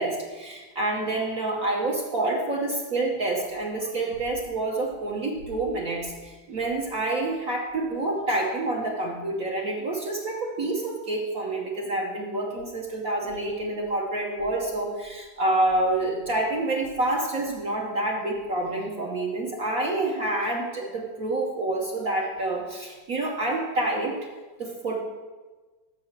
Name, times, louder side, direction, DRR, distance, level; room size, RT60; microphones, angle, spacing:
voice 1, 0.0-24.1 24.6-25.0, right 2 dB, 55° right, -2 dB, 1.2 m, -28 dB
7.1 x 5.6 x 6.6 m, 1.3 s
omnidirectional pair, 2.1 m